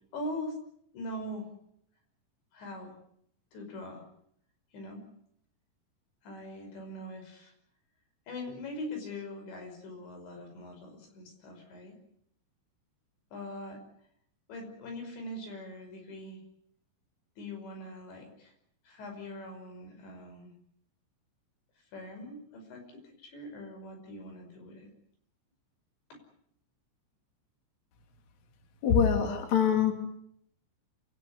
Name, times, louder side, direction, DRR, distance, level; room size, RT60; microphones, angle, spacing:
voice 1, 0.1-0.6 0.9-1.5 2.5-2.9 3.5-4.0 4.7-5.1 6.2-7.5 8.3-12.0 13.3-13.8 14.5-16.4 17.4-18.5 18.8-20.5 21.9-24.9 26.1-26.2, left 1 dB, 75° left, 5 dB, 7.7 m, -42 dB
voice 2, 28.8-29.9, left 7 dB, 45° left, 4 dB, 3.8 m, -24 dB
27.5 x 18.0 x 9.6 m, 0.71 s
omnidirectional pair, 5.1 m